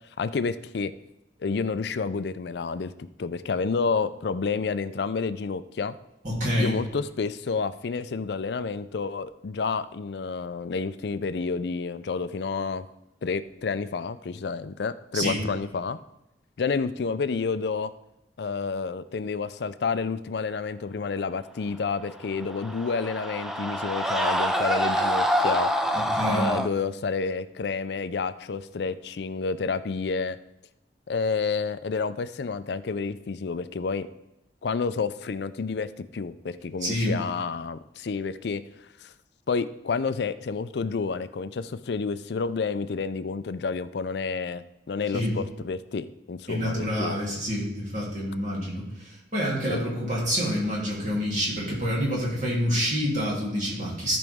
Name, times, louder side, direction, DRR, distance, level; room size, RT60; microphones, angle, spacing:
voice 1, 0.2-0.9 1.4-2.9 3.2-5.9 6.6-12.9 13.2-16.0 16.6-17.9 18.4-25.7 26.2-30.4 31.1-34.1 34.6-38.6 39.0-39.1 39.5-47.2 49.7-49.9, left 4 dB, 65° left, 13 dB, 0.4 m, -29 dB
voice 2, 6.2-6.8 15.1-15.4 25.9-26.6 36.8-37.2 45.1-45.3 46.5-54.2, equal, 40° right, -4 dB, 2.9 m, -27 dB
Screaming, 22.2-26.7, equal, ahead, 0.4 m, -26 dB
14.0 x 5.2 x 3.5 m, 0.91 s
head